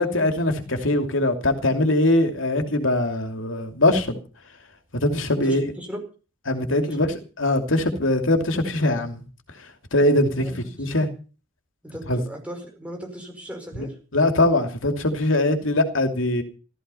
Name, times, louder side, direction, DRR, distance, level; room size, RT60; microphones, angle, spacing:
voice 1, 0.0-4.2 5.0-5.7 6.5-7.1 7.4-9.2 9.9-10.5 10.8-11.1 12.1-12.2 13.8-13.9 14.1-16.4, left 1 dB, 80° left, 2.7 m, -21 dB
voice 2, 5.4-6.1 6.9-7.0 10.4-11.1 11.8-14.0, equal, 5° right, 5.3 m, -37 dB
15.0 x 14.5 x 5.6 m
head